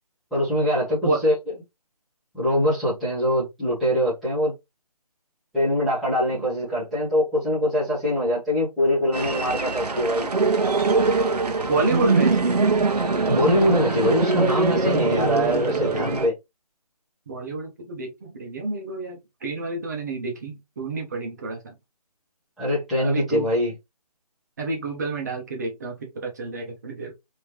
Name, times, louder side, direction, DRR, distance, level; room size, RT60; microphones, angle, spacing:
voice 1, 0.3-1.3 2.3-4.5 5.5-10.3 13.3-16.3 22.6-23.7, left 1 dB, ahead, 1.0 m, -23 dB
sound 1, 9.1-16.3, right 3 dB, 75° right, 1.1 m, -22 dB
voice 2, 11.6-12.7 17.3-21.8 23.0-23.5 24.6-27.1, right 3 dB, 25° right, 1.0 m, -29 dB
3.6 x 3.1 x 3.0 m
figure-of-eight pair, 170°, 20 cm